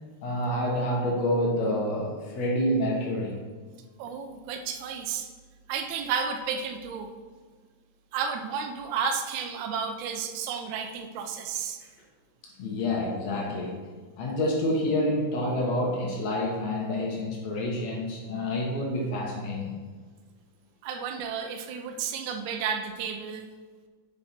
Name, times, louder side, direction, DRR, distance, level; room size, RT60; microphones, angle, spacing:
voice 1, 0.2-3.4 12.6-13.8 14.2-19.8, left 1 dB, 65° left, -2 dB, 2.3 m, -28 dB
voice 2, 4.0-5.3 5.7-7.1 8.1-11.9 20.8-23.5, right 6 dB, 80° right, 6 dB, 2.0 m, -32 dB
7.4 x 6.2 x 4.3 m, 1.5 s
omnidirectional pair, 3.4 m